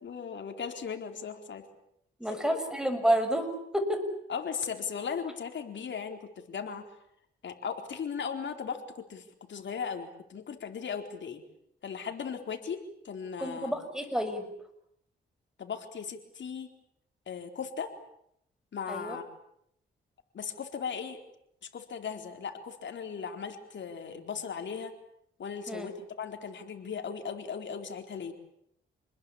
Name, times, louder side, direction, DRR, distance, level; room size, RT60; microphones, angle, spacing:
voice 1, 0.0-1.6 2.2-2.6 4.3-6.8 7.4-11.4 11.8-13.7 15.6-16.7 17.3-17.9 18.7-19.2 20.3-21.2 21.7-24.9 25.4-28.3, left 6 dB, 65° left, 5 dB, 4.3 m, -37 dB
voice 2, 2.2-4.1 13.4-14.5 18.9-19.2 25.7-25.9, right 1 dB, 5° right, 8 dB, 6.6 m, -29 dB
28.5 x 21.0 x 8.7 m, 0.75 s
cardioid pair, 80°, 20 cm